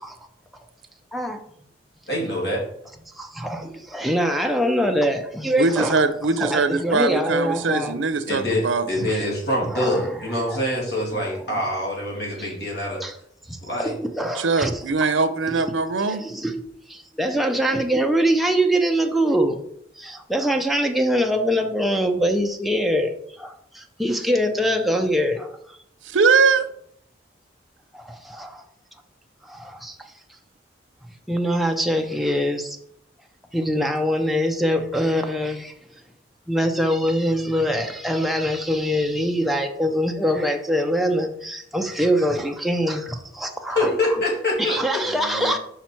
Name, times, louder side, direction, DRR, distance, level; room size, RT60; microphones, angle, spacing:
voice 1, 2.1-2.6 8.3-13.0 13.7-13.9 43.7-44.8, left 1 dB, 55° left, 2.4 m, -25 dB
voice 2, 3.2-5.9 6.4-8.0 9.1-9.2 9.7-10.1 10.5-10.6 11.5-11.7 13.0-13.1 13.5-14.8 15.5-15.8 16.1-19.6 20.0-25.8 27.9-28.6 29.4-30.1 31.3-32.8 33.5-35.7 36.5-44.3 44.6-45.6, equal, ahead, 0.6 m, -24 dB
voice 3, 5.6-9.1 14.3-16.2 26.0-26.6 45.1-45.6, right 4 dB, 85° right, 0.6 m, -22 dB
5.8 x 5.1 x 4.4 m
head